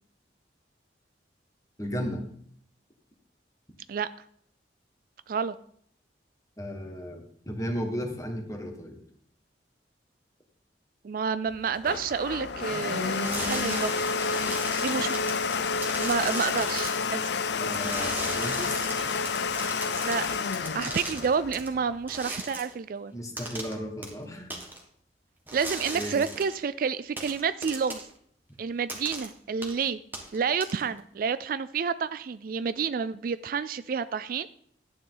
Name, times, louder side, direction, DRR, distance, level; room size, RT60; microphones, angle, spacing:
voice 1, 1.8-2.2 6.6-9.0 17.6-18.9 23.1-24.5 25.9-26.2, equal, 20° left, 3 dB, 1.6 m, -34 dB
voice 2, 11.0-13.9 14.8-15.2 16.0-17.3 20.0-20.4 20.7-23.1 25.5-28.1 28.6-30.0 30.3-34.5, right 6 dB, 50° right, 14 dB, 0.3 m, -29 dB
Domestic sounds home sounds, 11.5-22.2, left 5 dB, 70° left, 0.6 m, -30 dB
sound 1, 13.2-17.1 17.7-21.7 22.1-22.7 23.4-23.8 24.0-24.1 24.5-24.8 25.5-26.6 27.2-28.1 28.9-29.3 29.6-29.8 30.1-31.0, right 2 dB, 10° right, 1.6 m, -37 dB
11.5 x 9.5 x 3.9 m, 0.64 s
head